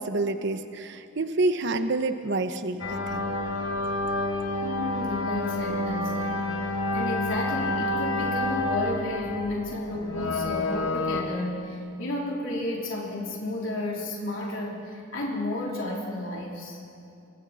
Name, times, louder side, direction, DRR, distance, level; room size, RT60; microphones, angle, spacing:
voice 1, 0.0-3.3, right 2 dB, 60° right, 9 dB, 1.0 m, -28 dB
sound 1, 2.8-11.2, left 2 dB, 85° left, 1.8 m, -29 dB
voice 2, 4.6-6.5 6.9-16.8, left 1 dB, 70° left, -3 dB, 3.4 m, -32 dB
26.0 x 24.5 x 4.2 m, 2.5 s
head